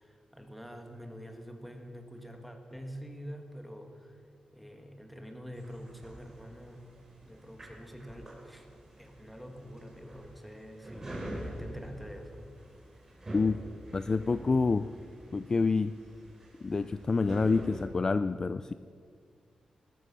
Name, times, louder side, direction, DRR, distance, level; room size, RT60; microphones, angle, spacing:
voice 1, 0.0-4.2 4.5-6.9 7.2-8.7 9.0-12.5, equal, ahead, 4 dB, 1.8 m, -46 dB
sound 1, 5.5-17.9, right 1 dB, 20° right, 3.7 m, -46 dB
voice 2, 13.9-14.9 15.3-15.9 16.6-18.7, left 4 dB, 30° left, 12 dB, 0.3 m, -27 dB
20.0 x 12.5 x 5.6 m, 2.1 s
wide cardioid pair, 145°, 2 cm